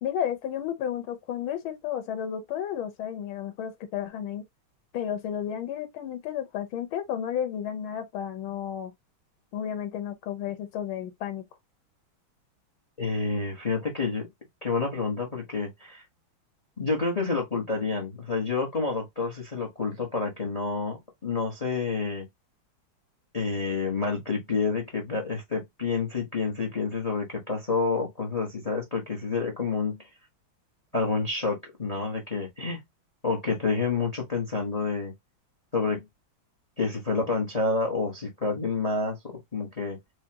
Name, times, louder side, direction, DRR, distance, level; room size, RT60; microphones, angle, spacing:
voice 1, 0.0-4.4 4.9-8.9 9.5-11.4, left 9 dB, 90° left, 1.7 m, -32 dB
voice 2, 13.0-14.3 14.6-16.0 16.8-22.3 23.3-30.1 30.9-32.8 33.2-35.1 35.7-36.0 36.8-40.0, left 4 dB, 30° left, 0.7 m, -29 dB
4.9 x 2.3 x 2.8 m
omnidirectional pair, 2.2 m